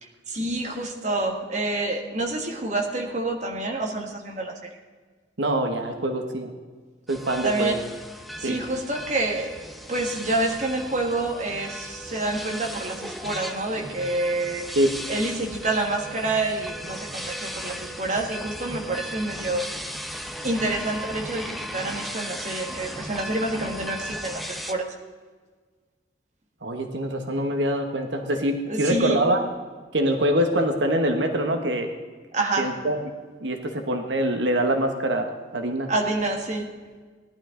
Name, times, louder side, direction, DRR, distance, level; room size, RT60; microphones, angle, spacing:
voice 1, 0.0-4.5 7.4-7.8 8.4-14.7 15.1-19.6 20.4-24.9 28.7-29.2 32.3-32.7 35.9-36.7, right 2 dB, 40° right, 2 dB, 1.7 m, -28 dB
voice 2, 5.4-6.5 7.1-7.8 8.4-8.6 14.7-14.9 26.6-29.4 29.9-31.9 32.6-33.0 33.4-35.9, right 1 dB, 80° right, 5 dB, 1.2 m, -24 dB
sound 1, 7.1-24.7, equal, ahead, 0.7 m, -36 dB
18.0 x 11.5 x 3.8 m, 1.5 s
head